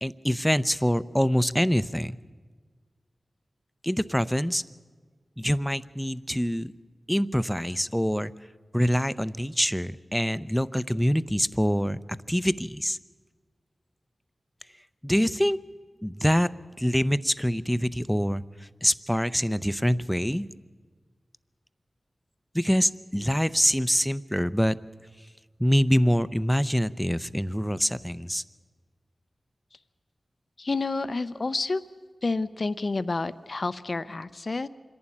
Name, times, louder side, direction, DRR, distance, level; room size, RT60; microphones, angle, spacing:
voice 1, 0.0-2.1 3.8-4.6 5.4-6.7 7.1-8.3 8.7-12.0 12.3-13.0 15.0-15.6 16.0-16.5 16.8-18.4 18.8-20.5 22.5-24.8 25.6-28.4, equal, ahead, 15 dB, 0.6 m, -25 dB
voice 2, 30.6-31.8 32.2-34.7, left 3 dB, 55° left, 13 dB, 0.5 m, -29 dB
25.5 x 11.5 x 9.8 m, 1.5 s
cardioid pair, 55°, 0 cm